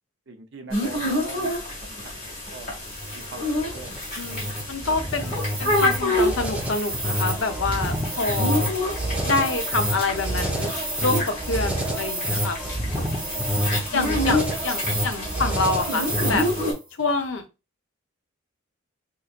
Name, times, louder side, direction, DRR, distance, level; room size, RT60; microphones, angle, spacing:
voice 1, 0.3-1.5 2.0-2.1 2.5-2.7 3.1-4.0 4.8-5.1 12.9-13.5 14.4-14.5, right 3 dB, 55° right, 5 dB, 0.6 m, -42 dB
sound 1, 0.7-16.7, left 1 dB, 35° left, 1.8 m, -29 dB
sound 2, 2.9-16.7, right 1 dB, 5° right, 0.7 m, -28 dB
voice 2, 4.2-8.7 9.2-10.7 11.0-12.6 13.9-16.5 17.0-17.4, left 3 dB, 60° left, 6 dB, 0.7 m, -27 dB
4.0 x 3.0 x 2.4 m, 0.28 s
head